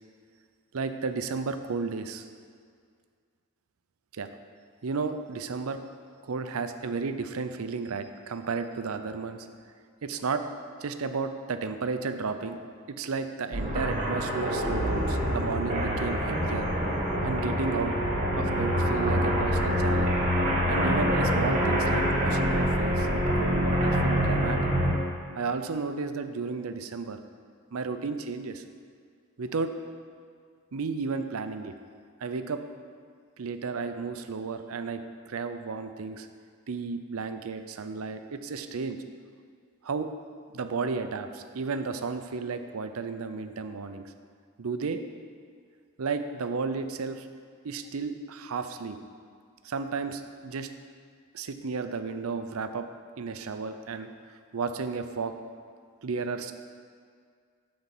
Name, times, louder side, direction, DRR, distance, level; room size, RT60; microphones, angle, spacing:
voice 1, 0.7-2.3 4.1-4.3 4.8-5.8 6.2-9.5 10.0-10.5 10.8-12.6 12.9-16.7 17.2-17.9 18.4-20.1 20.7-24.6 25.4-27.2 27.7-28.6 29.4-29.8 30.7-31.7 32.2-32.6 33.4-36.3 36.7-39.0 39.8-40.1 40.5-44.0 44.6-45.0 46.0-47.3 47.6-49.0 49.6-50.7 51.3-52.9 53.2-54.1 54.5-55.3 56.0-56.5, right 4 dB, 80° right, 8 dB, 0.6 m, -33 dB
sound 1, 13.5-24.9, equal, 35° right, 2.1 m, -26 dB
9.7 x 4.3 x 7.1 m, 2.1 s
head